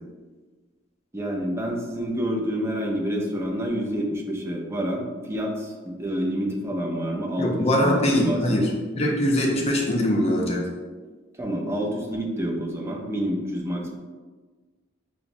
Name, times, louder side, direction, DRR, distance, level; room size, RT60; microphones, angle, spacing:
voice 1, 1.1-8.6 11.4-14.0, equal, 15° right, -1 dB, 0.4 m, -28 dB
voice 2, 7.4-10.7, equal, 35° left, -1 dB, 0.5 m, -22 dB
4.8 x 2.0 x 2.5 m, 1.4 s
head